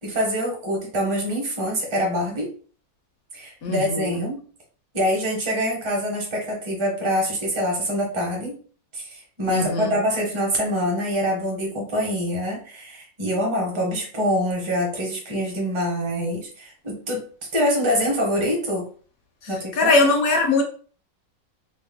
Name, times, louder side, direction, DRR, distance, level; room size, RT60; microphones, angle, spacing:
voice 1, 0.0-2.5 3.3-4.4 4.9-8.6 8.9-17.2 17.5-18.9 19.5-19.9, equal, 25° right, 0.6 m, -25 dB
voice 2, 3.6-4.2 9.5-10.0 19.7-20.6, left 3 dB, 65° left, 0.9 m, -21 dB
3.0 x 2.1 x 3.5 m
omnidirectional pair, 1.9 m